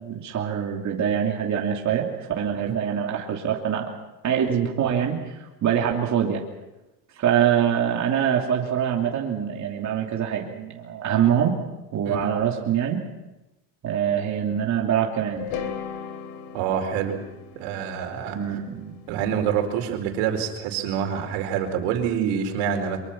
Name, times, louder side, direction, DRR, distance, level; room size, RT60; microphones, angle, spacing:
voice 1, 0.0-3.9 4.2-6.4 7.2-11.5 11.9-13.0 13.8-15.5 18.3-19.0, right 9 dB, 35° right, -1 dB, 3.0 m, -24 dB
sound 1, 15.4-19.5, left 7 dB, 65° left, 3.4 m, -37 dB
voice 2, 16.5-17.2 17.5-18.4 19.1-23.0, right 8 dB, 75° right, 5 dB, 4.7 m, -26 dB
24.0 x 23.5 x 6.1 m, 0.99 s
cardioid pair, 130°, 49 cm